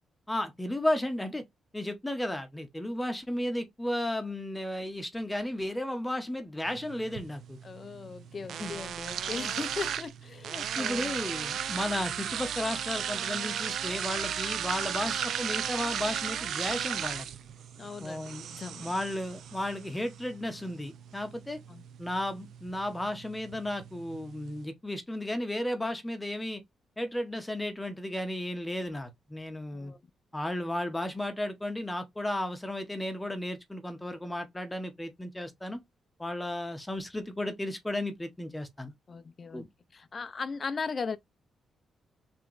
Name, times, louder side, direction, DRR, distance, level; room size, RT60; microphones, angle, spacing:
voice 1, 0.3-1.4 1.7-7.6 8.6-8.7 10.8-17.3 18.0-18.5 18.8-21.6 22.0-26.6 27.0-29.9 30.3-35.8 36.2-38.9 39.5-39.7, left 1 dB, 5° left, 0.8 m, -34 dB
sound 1, 6.6-24.6, right 9 dB, 65° right, 0.4 m, -36 dB
voice 2, 7.6-11.3 17.8-18.9 21.7-21.8 29.7-30.0 39.1-39.7 39.9-41.2, left 5 dB, 30° left, 0.4 m, -38 dB
3.4 x 2.9 x 3.8 m
wide cardioid pair, 170°, 0 cm